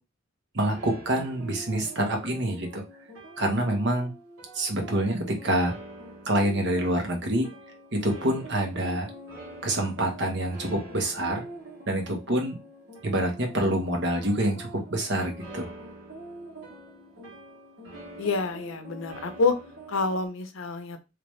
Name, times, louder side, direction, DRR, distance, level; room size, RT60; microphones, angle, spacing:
voice 1, 0.5-2.8 3.4-4.1 4.5-5.7 6.3-7.5 7.9-9.1 9.6-11.4 11.9-12.6 13.0-15.7, right 1 dB, 60° right, 3 dB, 1.1 m, -26 dB
sound 1, 0.7-20.3, right 1 dB, 80° right, 1.6 m, -45 dB
voice 2, 18.2-19.6 19.9-21.0, left 3 dB, 85° left, 8 dB, 0.7 m, -27 dB
3.3 x 2.9 x 3.2 m, 0.27 s
head